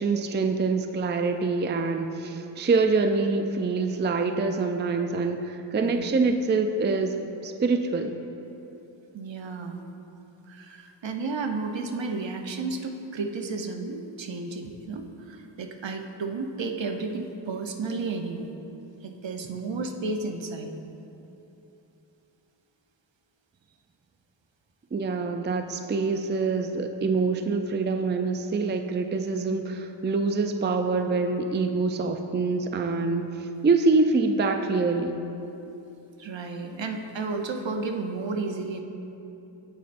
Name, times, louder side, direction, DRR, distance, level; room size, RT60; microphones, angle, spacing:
voice 1, 0.0-7.2 7.4-8.2 24.9-35.2, right 4 dB, 25° right, 6 dB, 0.4 m, -25 dB
voice 2, 9.1-9.8 10.5-18.5 19.0-20.7 36.2-38.8, right 3 dB, 65° right, 4 dB, 0.8 m, -32 dB
16.0 x 5.3 x 2.6 m, 3.0 s
wide cardioid pair, 55°, 47 cm